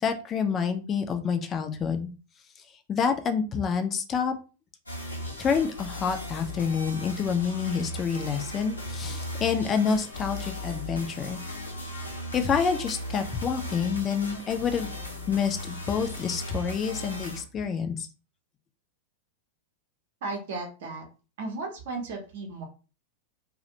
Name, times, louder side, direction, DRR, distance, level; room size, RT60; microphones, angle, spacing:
voice 1, 0.0-2.1 2.9-4.3 5.4-11.4 12.3-14.9 15.3-18.1, left 6 dB, 25° left, 7 dB, 0.4 m, -28 dB
sound 1, 4.9-17.4, left 1 dB, 80° left, 0.6 m, -37 dB
voice 2, 20.2-21.0 21.4-22.7, right 3 dB, 55° right, 1 dB, 0.6 m, -35 dB
2.4 x 2.1 x 2.7 m, 0.33 s
figure-of-eight pair, 90°, 0 cm